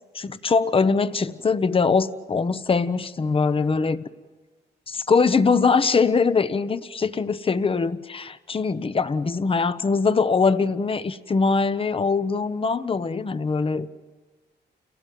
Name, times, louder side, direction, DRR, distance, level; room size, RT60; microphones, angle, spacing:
voice 1, 0.1-4.0 4.9-13.9, left 4 dB, 30° left, 0.9 m, -22 dB
29.5 x 18.0 x 9.3 m
wide cardioid pair, 135°, 18 cm